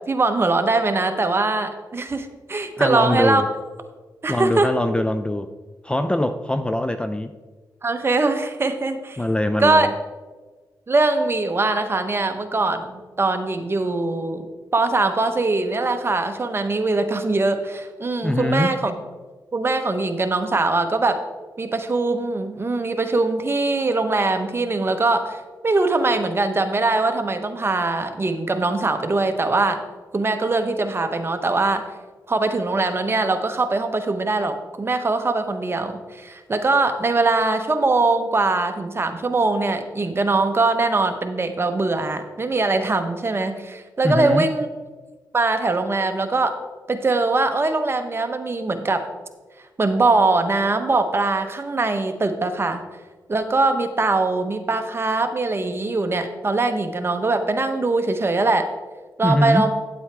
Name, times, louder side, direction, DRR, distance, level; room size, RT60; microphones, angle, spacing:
voice 1, 0.0-3.4 4.2-4.7 7.8-9.2 9.6-9.9 10.9-14.5 14.7-18.9 19.5-21.2 21.6-29.8 30.1-31.9 32.3-44.7 45.3-46.6 46.9-49.1 49.8-52.8 53.3-58.7 59.2-59.7, right 3 dB, 35° right, 7 dB, 0.9 m, -22 dB
voice 2, 2.8-3.5 4.3-5.5 5.8-7.3 9.2-9.9 18.2-18.7 44.0-44.5 59.2-59.7, left 1 dB, 15° left, 9 dB, 0.4 m, -22 dB
9.5 x 7.8 x 3.4 m, 1.3 s
cardioid pair, 75°, 7 cm